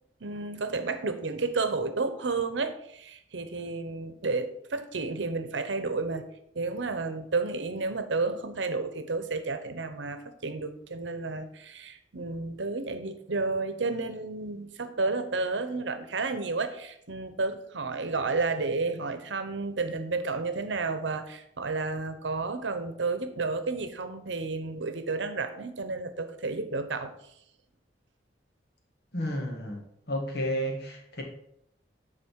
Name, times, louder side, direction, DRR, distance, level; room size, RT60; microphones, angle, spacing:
voice 1, 0.2-6.2 6.5-27.1, right 3 dB, 90° right, 9 dB, 0.8 m, -31 dB
voice 2, 29.1-29.8 30.1-31.2, equal, 60° left, 0 dB, 1.7 m, -31 dB
10.0 x 4.0 x 4.6 m, 0.75 s
head